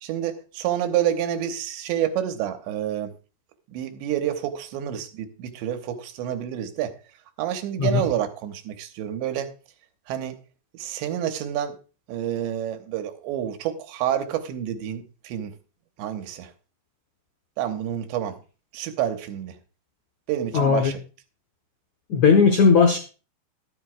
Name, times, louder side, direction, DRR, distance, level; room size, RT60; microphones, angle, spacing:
voice 1, 0.0-3.1 3.7-6.9 7.4-9.5 10.1-10.4 10.7-11.8 12.1-15.5 16.0-16.5 17.6-18.4 18.7-19.6 20.3-21.0, right 10 dB, 85° right, 7 dB, 3.3 m, -28 dB
voice 2, 20.5-20.9 22.1-23.0, left 5 dB, 85° left, 5 dB, 1.6 m, -17 dB
12.5 x 12.5 x 2.3 m, 0.34 s
omnidirectional pair, 5.1 m